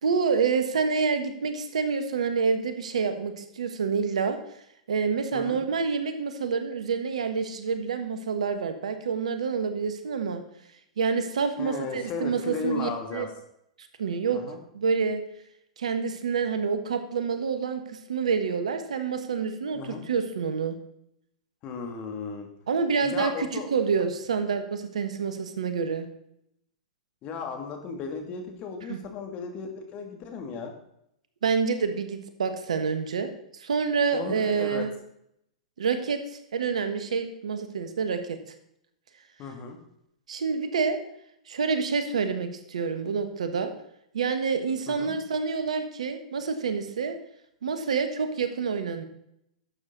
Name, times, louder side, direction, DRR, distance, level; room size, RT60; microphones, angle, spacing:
voice 1, 0.0-4.4 4.9-10.4 11.0-13.3 14.0-14.4 14.7-15.2 15.8-20.8 22.7-26.1 28.9-29.0 31.4-34.9 35.8-38.4 40.3-41.0 41.5-43.7 44.1-47.2 47.6-49.0, right 5 dB, 75° right, 8 dB, 1.4 m, -27 dB
voice 2, 11.6-13.3 14.3-14.6 19.7-20.0 21.6-22.5 23.0-23.7 27.2-30.7 34.1-34.9 39.4-39.8 44.9-45.2, left 5 dB, 35° left, 4 dB, 2.4 m, -35 dB
11.5 x 7.8 x 4.0 m, 0.75 s
hypercardioid pair, 110°, 4 cm